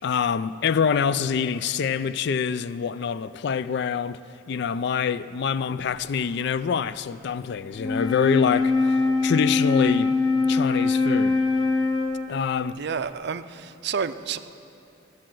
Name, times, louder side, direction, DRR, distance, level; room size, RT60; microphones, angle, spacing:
voice 1, 0.0-4.2 4.5-10.1 10.5-11.4 12.3-12.8, left 6 dB, 60° left, 0.4 m, -25 dB
Wind instrument woodwind instrument, 7.7-12.5, left 3 dB, 25° left, 0.8 m, -23 dB
voice 2, 12.8-14.4, right 6 dB, 60° right, 0.5 m, -30 dB
13.5 x 8.8 x 7.6 m
head